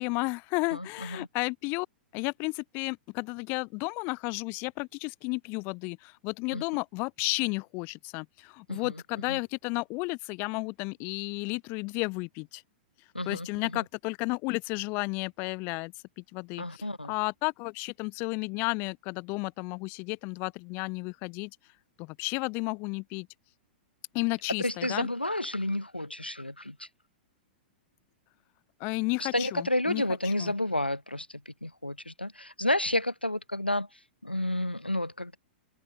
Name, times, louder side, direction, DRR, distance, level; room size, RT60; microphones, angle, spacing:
voice 1, 0.0-1.9 2.1-12.6 13.3-21.5 22.0-23.3 24.1-25.1 28.8-30.5, left 29 dB, 40° left, 2.8 m, -33 dB
voice 2, 0.7-1.3 6.5-6.6 8.7-8.9 9.3-9.4 13.1-13.5 13.7-13.8 16.6-17.1 24.6-26.9 29.2-33.9 34.2-35.4, left 1 dB, 85° left, 3.9 m, -31 dB
figure-of-eight pair, 100°, 5 cm